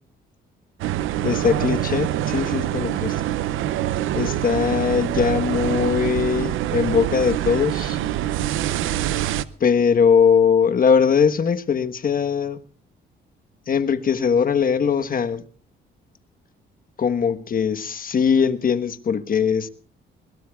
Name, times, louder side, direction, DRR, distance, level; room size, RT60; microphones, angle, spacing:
sound 1, 0.8-9.4, right 12 dB, 85° right, 0.7 m, -25 dB
voice 1, 1.2-3.2 4.1-8.0 9.6-12.6 13.7-15.4 17.0-19.7, left 6 dB, 45° left, 1.3 m, -20 dB
21.5 x 21.0 x 2.4 m
cardioid pair, 90°, 20 cm